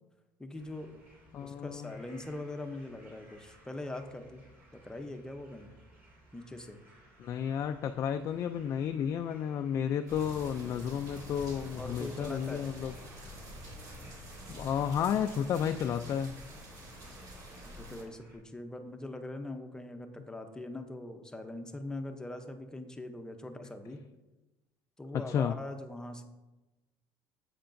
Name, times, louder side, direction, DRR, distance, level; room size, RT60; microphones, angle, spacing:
voice 1, 0.4-1.0 1.4-4.4 4.7-5.7 6.3-6.8 11.8-12.7 17.7-24.0 25.0-26.2, left 2 dB, 10° left, 6 dB, 0.7 m, -42 dB
sound 1, 0.6-18.4, right 1 dB, 30° right, 3.0 m, -60 dB
voice 2, 1.3-2.0 7.2-12.9 14.5-16.4 25.1-25.6, left 8 dB, 40° left, 7 dB, 0.3 m, -32 dB
sound 2, 10.1-18.0, equal, 60° right, 3.0 m, -47 dB
10.0 x 7.9 x 2.6 m, 1.1 s
cardioid pair, 150°, 8 cm